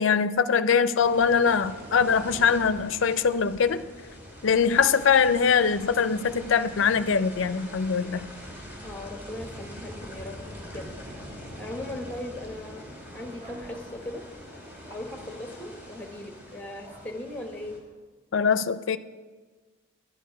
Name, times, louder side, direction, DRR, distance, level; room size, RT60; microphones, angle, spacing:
voice 1, 0.0-3.8 4.4-8.3 18.3-19.0, left 6 dB, 65° left, 13 dB, 0.4 m, -22 dB
sound 1, 1.0-17.8, equal, 10° right, 1.8 m, -43 dB
voice 2, 8.8-11.0 11.6-12.9 13.1-14.2 14.9-17.8, left 1 dB, 5° left, 3 dB, 1.0 m, -38 dB
sound 2, 13.4-13.9 14.8-15.1 16.8-17.1, right 2 dB, 35° right, 2.2 m, -49 dB
10.5 x 10.5 x 5.2 m, 1.4 s
head